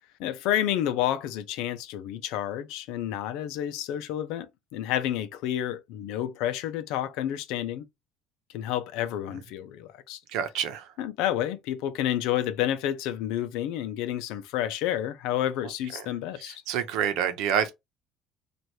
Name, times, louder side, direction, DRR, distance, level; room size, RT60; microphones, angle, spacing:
voice 1, 0.2-7.8 8.5-10.2 11.0-16.6, left 12 dB, 85° left, 0.6 m, -30 dB
voice 2, 10.3-10.8 16.4-17.7, right 9 dB, 75° right, 0.8 m, -27 dB
3.1 x 2.5 x 4.4 m
cardioid pair, 155°, 0 cm